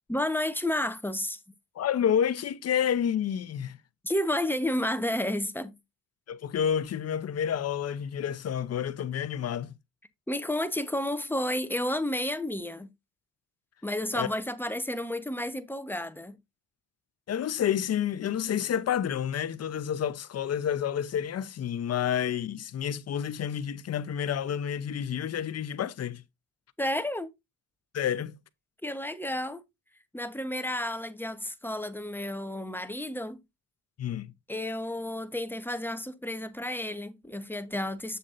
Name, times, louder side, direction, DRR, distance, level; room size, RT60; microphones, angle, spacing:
voice 1, 0.1-1.4 4.0-5.8 10.3-12.9 13.8-16.4 26.8-27.3 28.8-29.6 30.1-33.4 34.5-38.2, left 1 dB, 5° left, 1.1 m, -31 dB
voice 2, 1.7-3.8 6.3-9.7 14.1-14.3 17.3-26.2 27.9-28.4 34.0-34.3, left 9 dB, 50° left, 0.8 m, -29 dB
8.1 x 7.2 x 2.6 m
supercardioid pair, 70°, 33 cm